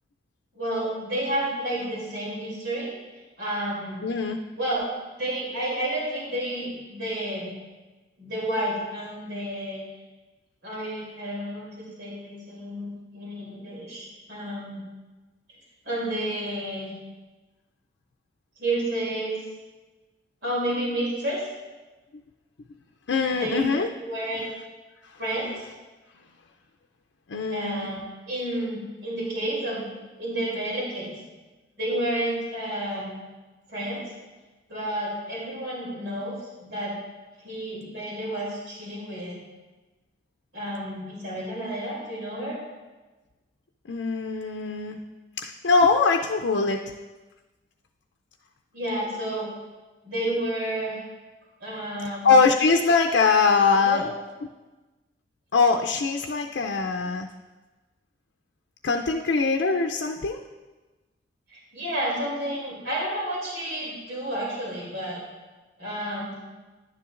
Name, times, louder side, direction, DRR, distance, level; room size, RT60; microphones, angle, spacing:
voice 1, 0.5-2.9 3.4-4.1 4.5-4.8 5.2-7.5 8.2-9.8 10.6-14.9 15.8-16.9 18.6-19.4 20.4-21.4 23.3-23.7 23.9-24.5 25.2-25.6 27.5-29.9 30.2-31.2 31.8-33.2 33.7-34.1 34.7-37.0 37.4-39.4 40.5-42.6 48.7-49.5 50.0-51.1 51.6-52.3 53.9-54.1 61.5-65.2 65.8-66.3, right 1 dB, 70° right, -6 dB, 2.8 m, -30 dB
voice 2, 4.0-4.4 23.1-23.9 25.0-25.2 27.3-27.9 43.9-45.0 45.4-46.8 52.0-54.0 55.5-57.3 58.8-60.4, left 4 dB, 85° left, 3 dB, 0.5 m, -22 dB
11.0 x 9.8 x 2.5 m, 1.2 s
head